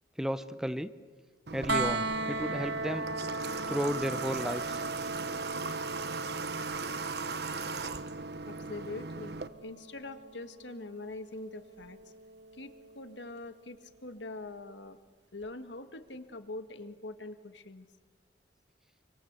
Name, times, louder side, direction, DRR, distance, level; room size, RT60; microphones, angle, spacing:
voice 1, 0.2-0.9 1.5-3.0 3.7-4.8, equal, 5° right, 12 dB, 0.7 m, -33 dB
Water / Water tap faucet, 1.5-9.5, right 4 dB, 65° right, 1.2 m, -38 dB
sound 1, 1.7-13.5 15.4-15.5, right 2 dB, 80° right, 1.4 m, -38 dB
voice 2, 8.5-12.1 12.5-15.0 15.3-17.9, left 2 dB, 85° left, 9 dB, 1.8 m, -43 dB
26.0 x 24.5 x 8.2 m, 1.4 s
head